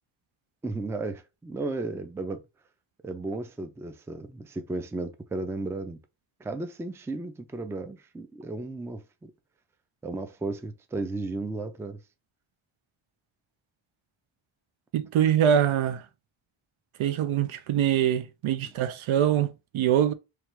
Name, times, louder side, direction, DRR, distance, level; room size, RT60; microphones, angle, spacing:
voice 1, 0.6-2.4 3.0-6.0 6.4-9.3 10.0-12.0, right 2 dB, 5° right, 0.3 m, -34 dB
voice 2, 14.9-16.0 17.0-20.1, right 9 dB, 80° right, 0.7 m, -24 dB
3.3 x 2.4 x 4.4 m
wide cardioid pair, 120°, 48 cm